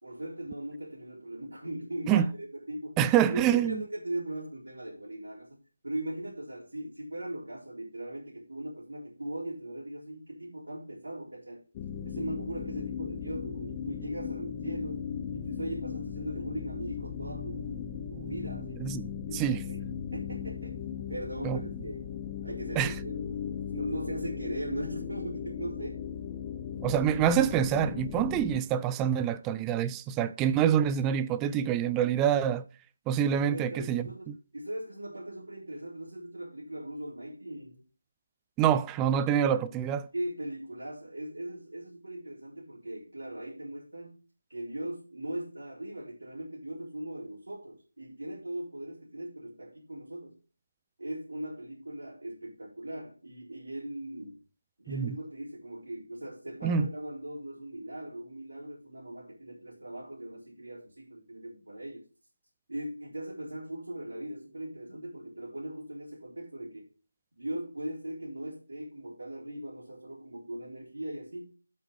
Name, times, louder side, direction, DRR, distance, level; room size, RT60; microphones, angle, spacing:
voice 1, 0.0-3.0 3.3-11.6 12.0-15.0 15.3-18.8 19.3-19.8 20.1-22.1 22.4-23.4 23.7-26.1 33.5-37.8 40.1-44.1 44.5-50.4 51.0-54.4 54.8-62.0 62.7-66.9 67.4-71.6, right 1 dB, 75° right, 3.9 m, -39 dB
voice 2, 3.0-3.8 18.8-19.6 21.4-21.6 22.8-22.9 26.8-32.6 33.1-34.1 38.6-40.1 54.9-55.2 56.6-56.8, right 9 dB, 10° right, 0.4 m, -26 dB
sound 1, 11.7-28.6, left 8 dB, 20° left, 0.9 m, -37 dB
8.4 x 7.0 x 5.0 m
figure-of-eight pair, 160°, 0 cm